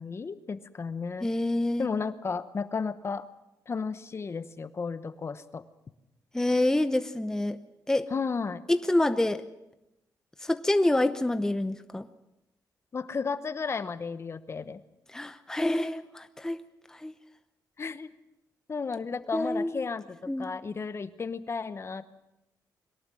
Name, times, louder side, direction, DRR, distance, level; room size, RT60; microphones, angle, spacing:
voice 1, 0.0-1.3 1.8-3.3 3.7-5.6 8.1-8.6 12.9-14.8 17.8-18.1 18.7-22.1, left 5 dB, 35° left, 13 dB, 1.1 m, -33 dB
voice 2, 1.2-1.9 6.3-7.6 7.9-8.1 8.7-9.4 10.4-12.1 15.1-16.6 16.9-17.1 19.3-19.9 20.3-20.5, left 1 dB, 10° left, 10 dB, 0.8 m, -27 dB
22.5 x 18.0 x 7.7 m, 0.89 s
cardioid pair, 110°, 7 cm